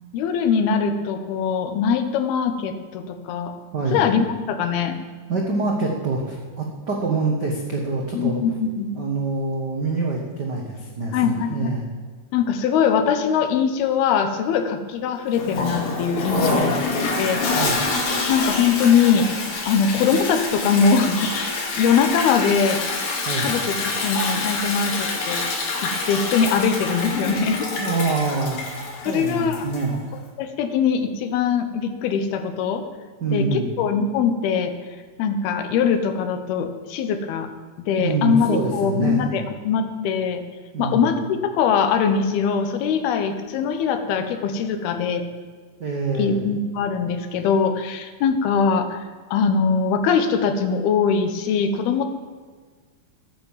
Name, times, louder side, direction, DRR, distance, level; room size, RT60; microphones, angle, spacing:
voice 1, 0.1-3.5 3.9-5.0 8.1-8.9 11.1-11.7 12.3-16.8 17.2-17.4 18.3-19.3 19.7-22.8 23.4-23.8 24.0-25.5 25.8-27.7 29.1-29.6 30.4-32.8 33.3-34.7 35.2-37.5 37.8-40.4 40.8-45.2 46.2-52.1, left 6 dB, 90° left, 8 dB, 3.1 m, -22 dB
voice 2, 3.7-4.1 5.3-8.4 8.9-11.9 16.2-16.8 17.5-17.9 23.2-23.6 27.8-28.7 29.0-30.1 33.2-33.7 38.0-39.3 40.7-41.1 45.8-46.4, right 3 dB, 65° right, 0 dB, 1.0 m, -25 dB
Toilet flush, 15.3-30.0, left 3 dB, 70° left, 3.9 m, -26 dB
14.0 x 8.8 x 7.4 m, 1.5 s
omnidirectional pair, 4.3 m